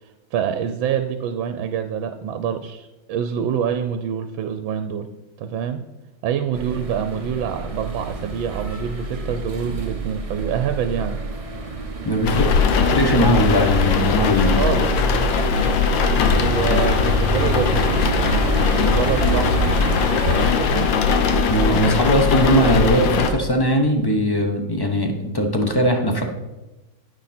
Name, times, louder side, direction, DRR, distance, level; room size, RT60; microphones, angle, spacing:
voice 1, 0.3-5.1 5.4-5.8 6.2-11.2 14.4-14.9 16.2-18.1 18.8-19.6 20.1-20.9, right 8 dB, 85° right, 8 dB, 1.4 m, -26 dB
sound 1, 6.5-20.5, right 3 dB, 40° right, 0.5 m, -28 dB
voice 2, 12.0-12.5 12.9-14.8 21.5-26.2, equal, 20° left, 3 dB, 0.7 m, -20 dB
sound 2, 12.2-23.3, left 5 dB, 75° left, 1.7 m, -20 dB
9.8 x 8.8 x 4.3 m, 1.0 s
omnidirectional pair, 2.1 m